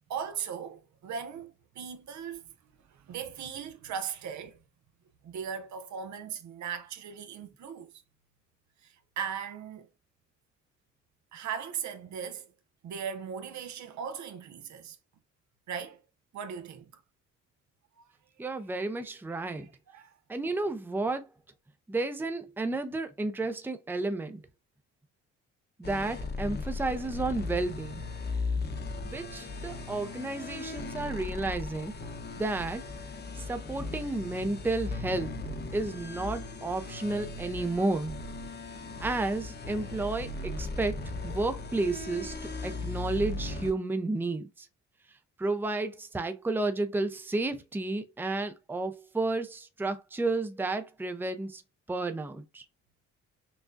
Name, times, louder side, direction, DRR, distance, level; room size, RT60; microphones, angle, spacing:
voice 1, 0.1-2.4 2.9-4.6 5.2-7.9 8.8-9.9 11.3-12.5 12.8-15.0 15.7-16.0 16.3-16.9 18.0-18.1 19.5-20.1, right 7 dB, 65° right, 0.8 m, -38 dB
voice 2, 18.4-19.7 20.3-21.3 21.9-24.4 25.8-28.0 29.1-31.9 32.4-32.8 33.4-35.3 35.7-38.1 39.0-44.7 45.4-51.6 51.9-52.6, right 2 dB, 5° right, 0.6 m, -32 dB
sound 1, 25.8-43.7, left 3 dB, 35° left, 0.9 m, -37 dB
6.0 x 2.2 x 2.6 m
cardioid pair, 90°, 30 cm